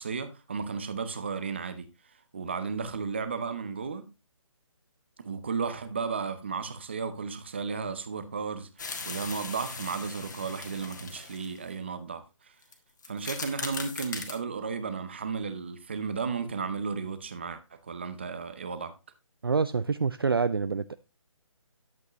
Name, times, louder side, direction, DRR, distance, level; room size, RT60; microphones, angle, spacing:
voice 1, 0.0-1.9 2.3-4.1 5.2-12.5 13.1-18.9, right 5 dB, 20° right, 0.7 m, -34 dB
sound 1, 8.8-11.7 12.6-12.7 13.0-14.4, left 4 dB, 35° left, 1.7 m, -39 dB
voice 2, 19.4-20.9, right 5 dB, 45° right, 0.4 m, -26 dB
11.0 x 8.1 x 3.1 m
hypercardioid pair, 175°, 17 cm